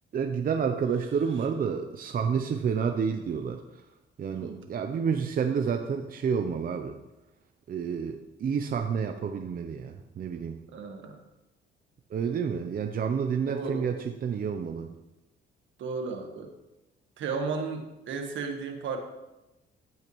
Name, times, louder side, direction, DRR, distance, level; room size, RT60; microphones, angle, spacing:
voice 1, 0.1-3.6 4.2-7.0 7.7-10.6 12.1-14.9, right 6 dB, 45° right, 6 dB, 0.6 m, -29 dB
voice 2, 4.3-4.7 10.7-11.2 13.5-13.9 15.8-16.5 17.2-19.0, right 4 dB, 75° right, 4 dB, 1.4 m, -34 dB
15.0 x 5.6 x 3.1 m, 0.99 s
cardioid pair, 90°, 20 cm